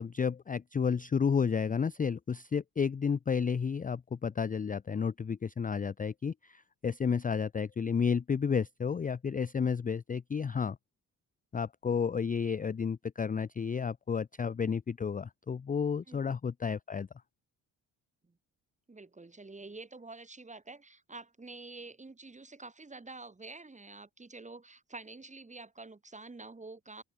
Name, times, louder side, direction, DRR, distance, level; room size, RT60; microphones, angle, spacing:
voice 1, 0.0-10.8 11.5-17.1, left 6 dB, 20° left, 0.4 m, -31 dB
voice 2, 18.9-27.0, right 3 dB, 15° right, 1.2 m, -48 dB
supercardioid pair, 55°, 45 cm